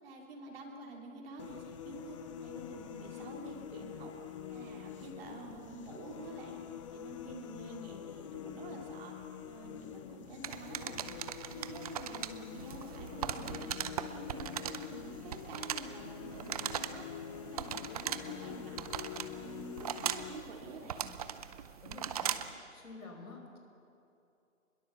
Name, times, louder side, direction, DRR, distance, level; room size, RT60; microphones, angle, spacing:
voice 1, 0.0-4.1 4.5-6.6 6.9-9.1 9.5-11.1 11.5-13.7 14.0-17.0 17.4-18.9 19.3-21.1, right 2 dB, 45° right, 0 dB, 3.2 m, -48 dB
sound 1, 1.4-20.4, left 9 dB, 25° left, 0.7 m, -46 dB
sound 2, 10.4-22.6, right 9 dB, 30° right, 0.6 m, -40 dB
voice 2, 21.8-22.4 22.7-23.6, left 3 dB, 90° left, 2 dB, 5.1 m, -49 dB
25.0 x 21.5 x 6.8 m, 2.7 s
hypercardioid pair, 140°, 41 cm